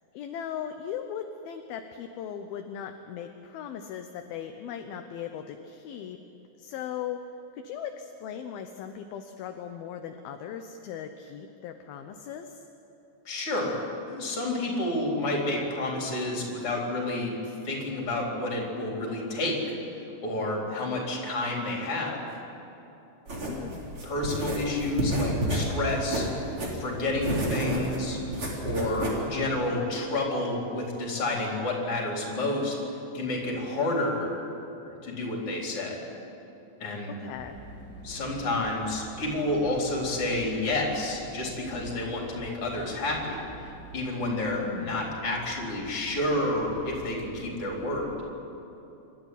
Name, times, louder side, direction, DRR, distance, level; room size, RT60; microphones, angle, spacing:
voice 1, 0.1-6.2 6.6-7.2 7.5-12.6 23.4-24.0 37.2-37.6 44.5-45.2, left 8 dB, 75° left, 6 dB, 2.5 m, -38 dB
voice 2, 13.2-19.7 20.2-22.2 24.0-26.3 26.7-28.2 28.6-32.8 33.1-34.3 34.9-36.0 36.8-37.1 38.0-43.5 43.9-48.1, left 2 dB, 35° left, -1 dB, 4.7 m, -30 dB
sound 1, 23.3-29.3, right 1 dB, 30° right, 4.3 m, -30 dB
sound 2, 37.3-48.1, right 1 dB, 5° left, 3.0 m, -47 dB
27.5 x 13.0 x 10.0 m, 3.0 s
omnidirectional pair, 4.9 m